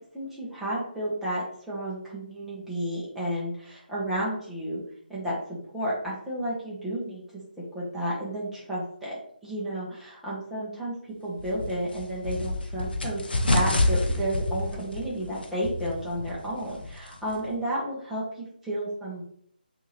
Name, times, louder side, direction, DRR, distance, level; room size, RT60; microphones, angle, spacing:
voice 1, 0.1-4.8 5.1-5.4 5.7-7.4 7.7-9.1 9.4-11.0 11.2-13.2 13.5-19.2, right 1 dB, 5° right, -9 dB, 1.0 m, -32 dB
sound 1, 11.4-17.5, left 1 dB, 75° left, 0.7 m, -29 dB
3.5 x 2.8 x 3.1 m, 0.65 s
figure-of-eight pair, 155°, 5 cm